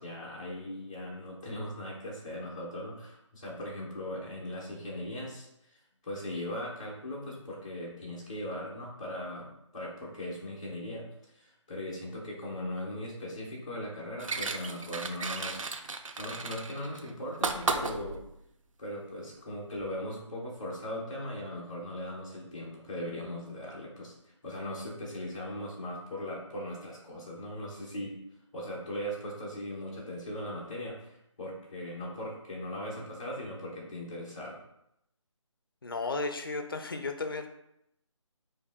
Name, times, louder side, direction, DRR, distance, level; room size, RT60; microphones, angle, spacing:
voice 1, 0.0-5.5 6.0-11.1 11.3-15.7 16.2-18.2 18.8-28.2 28.5-34.6, left 1 dB, 10° left, -7 dB, 0.7 m, -39 dB
sound 1, 14.2-18.4 19.8-19.9, right 4 dB, 85° right, 0.5 m, -34 dB
voice 2, 35.8-37.5, left 3 dB, 45° left, 6 dB, 0.5 m, -34 dB
4.5 x 2.7 x 3.5 m, 0.81 s
figure-of-eight pair, 175°, 16 cm